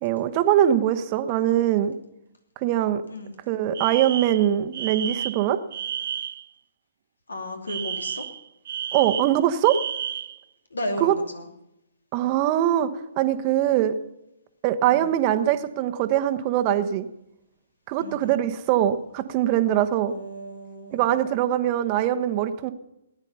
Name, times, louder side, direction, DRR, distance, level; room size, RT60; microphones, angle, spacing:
voice 1, 0.0-1.9 2.6-3.0 3.5-5.6 8.9-9.8 11.0-11.1 12.1-12.9 13.2-13.9 14.6-17.1 17.9-20.1 20.9-22.7, right 11 dB, 35° right, 9 dB, 1.1 m, -22 dB
Alarm, 3.7-6.5 7.7-10.4, right 9 dB, 55° right, 0.5 m, -32 dB
voice 2, 7.3-8.3 10.7-11.5 14.8-15.2 18.0-18.4 20.1-21.2, left 1 dB, 80° left, 5 dB, 2.8 m, -34 dB
18.5 x 9.7 x 5.7 m, 0.87 s
figure-of-eight pair, 125°, 0 cm